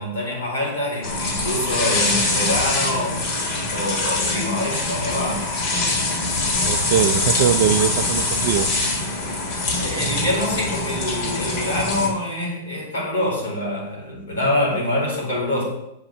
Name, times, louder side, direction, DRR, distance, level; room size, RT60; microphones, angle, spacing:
voice 1, 0.0-3.2 3.7-5.5 9.8-15.6, left 1 dB, 80° left, -2 dB, 2.5 m, -25 dB
sound 1, 1.0-12.1, left 2 dB, 55° left, 1.7 m, -23 dB
voice 2, 6.6-8.7, right 9 dB, 60° right, 8 dB, 0.3 m, -21 dB
7.1 x 2.6 x 5.6 m, 0.84 s
hypercardioid pair, 105°, 0 cm